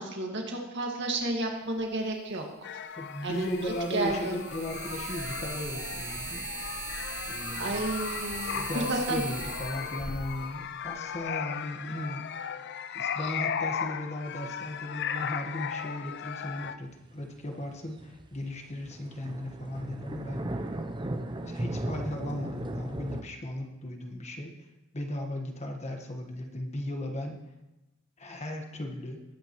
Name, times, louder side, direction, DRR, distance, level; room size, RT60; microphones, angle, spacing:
voice 1, 0.0-2.5 3.2-3.5 3.9-4.4 7.6-9.2, right 2 dB, 60° right, 1 dB, 2.1 m, -31 dB
sound 1, 1.8-1.9 3.2-11.2, right 3 dB, 45° right, 2.0 m, -39 dB
sound 2, 2.6-16.7, left 7 dB, 55° left, 0.5 m, -37 dB
voice 2, 3.0-6.7 7.3-7.9 8.5-12.3 12.9-20.5 21.4-24.5 24.9-27.4 28.2-29.2, left 1 dB, 35° left, 3 dB, 1.4 m, -36 dB
sound 3, 17.0-23.2, right 1 dB, 25° right, 0.7 m, -36 dB
20.5 x 9.1 x 3.1 m, 0.99 s
head